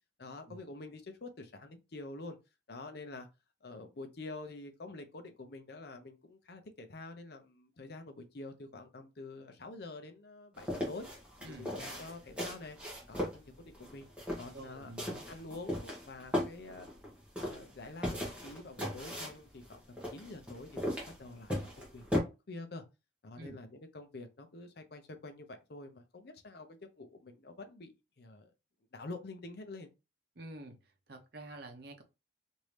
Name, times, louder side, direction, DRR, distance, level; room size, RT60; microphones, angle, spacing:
voice 1, 0.2-2.4 2.7-3.3 3.6-11.1 11.5-12.8 13.1-14.1 14.4-14.9 15.3-16.9 17.4-22.8 23.2-28.5 28.9-29.9, left 2 dB, 55° left, 0.6 m, -47 dB
sound 1, 10.5-22.2, left 1 dB, 5° right, 1.2 m, -38 dB
voice 2, 14.5-15.3 23.4-23.6 30.4-32.0, right 1 dB, 55° right, 0.8 m, -48 dB
3.1 x 2.6 x 3.2 m
head